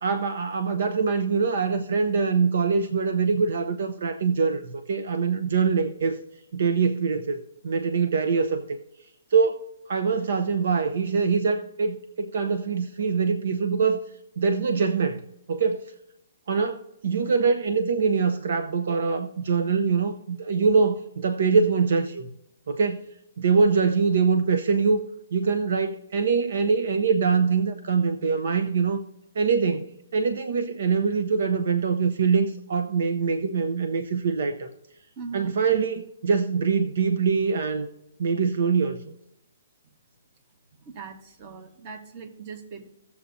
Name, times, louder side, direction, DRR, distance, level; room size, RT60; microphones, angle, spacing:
voice 1, 0.0-6.2 6.5-8.8 9.3-9.6 9.9-14.0 14.4-15.2 15.5-15.8 16.5-22.3 22.7-23.0 23.4-25.0 25.3-29.0 29.4-34.7 35.3-37.9 38.2-39.0, right 5 dB, 65° right, 0.6 m, -24 dB
voice 2, 35.2-35.6 40.7-42.9, right 5 dB, 35° right, 1.3 m, -40 dB
17.0 x 7.0 x 2.6 m
hypercardioid pair, 155°, 0 cm